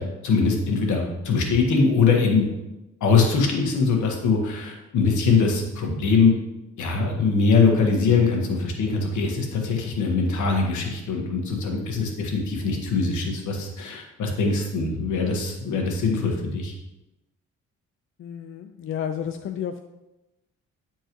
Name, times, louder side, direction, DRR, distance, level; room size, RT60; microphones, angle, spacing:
voice 1, 0.0-2.5 3.0-6.3 6.8-16.7, left 4 dB, 75° left, 1 dB, 1.5 m, -22 dB
voice 2, 18.2-19.8, left 8 dB, 45° left, 7 dB, 0.4 m, -31 dB
9.2 x 4.5 x 3.0 m, 0.98 s
cardioid pair, 90°, 30 cm